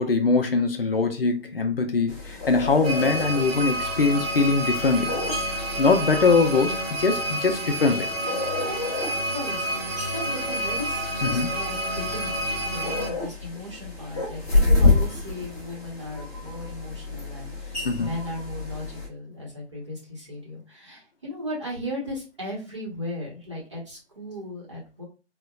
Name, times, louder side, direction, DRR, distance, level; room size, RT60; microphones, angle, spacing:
voice 1, 0.0-5.2 5.8-8.1 11.2-11.5 17.8-18.1, left 4 dB, 55° left, 0.6 m, -22 dB
sound 1, 2.1-19.1, left 3 dB, 5° left, 1.0 m, -29 dB
sound 2, 2.8-13.1, right 1 dB, 60° right, 0.9 m, -29 dB
voice 2, 9.3-12.4 12.7-25.1, left 1 dB, 25° right, 0.9 m, -36 dB
4.4 x 2.1 x 2.3 m
hypercardioid pair, 170°, 34 cm